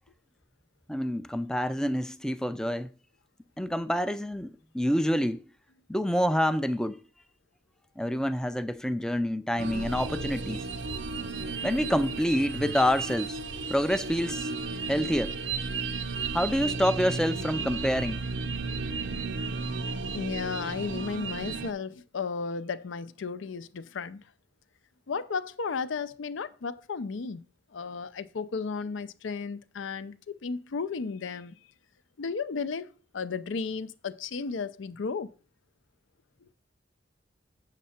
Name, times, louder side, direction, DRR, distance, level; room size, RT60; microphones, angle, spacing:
voice 1, 0.9-2.9 3.6-5.4 5.9-7.0 8.0-10.7 11.6-13.4 13.7-14.5 14.9-15.3 16.3-18.2, equal, 5° left, 0.3 m, -27 dB
sound 1, 9.6-21.7, right 4 dB, 80° right, 0.6 m, -34 dB
voice 2, 20.1-24.2 25.1-27.5 27.7-31.5 32.2-35.3, left 5 dB, 90° left, 0.5 m, -34 dB
7.3 x 6.6 x 4.3 m
head